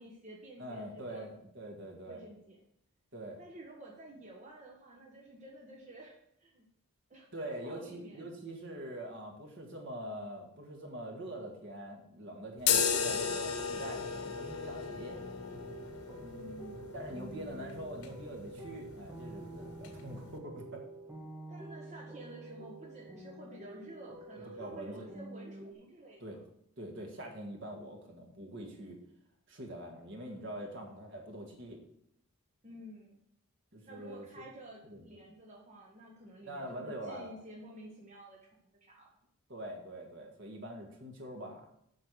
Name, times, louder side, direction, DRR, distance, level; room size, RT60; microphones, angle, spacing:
voice 1, 0.0-1.2 2.1-2.6 3.4-6.6 7.1-8.3 16.2-16.9 21.5-26.2 32.6-33.2 33.8-38.4 38.7-39.1, right 1 dB, 30° right, -2 dB, 1.3 m, -51 dB
voice 2, 0.6-2.2 3.1-3.4 7.3-15.2 16.9-20.8 24.5-25.1 26.2-26.4 26.8-29.0 29.5-31.8 33.7-34.5 34.8-35.2 36.4-37.3 39.5-41.7, right 1 dB, 55° right, 1 dB, 1.8 m, -44 dB
sound 1, 12.6-20.4, left 6 dB, 85° left, 1.3 m, -36 dB
sound 2, 14.4-25.7, right 1 dB, 10° right, 1.0 m, -48 dB
8.0 x 5.9 x 6.2 m, 0.72 s
head